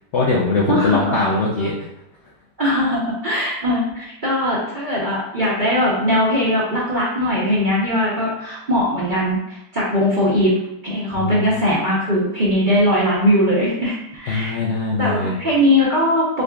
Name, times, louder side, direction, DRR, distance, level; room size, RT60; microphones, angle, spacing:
voice 1, 0.1-1.9 11.1-11.5 14.3-15.3, left 3 dB, 70° left, -3 dB, 0.6 m, -21 dB
voice 2, 0.7-1.4 2.6-10.5 10.8-14.6 15.0-16.4, equal, 45° right, -7 dB, 0.6 m, -20 dB
3.8 x 3.3 x 2.2 m, 0.82 s
omnidirectional pair, 1.7 m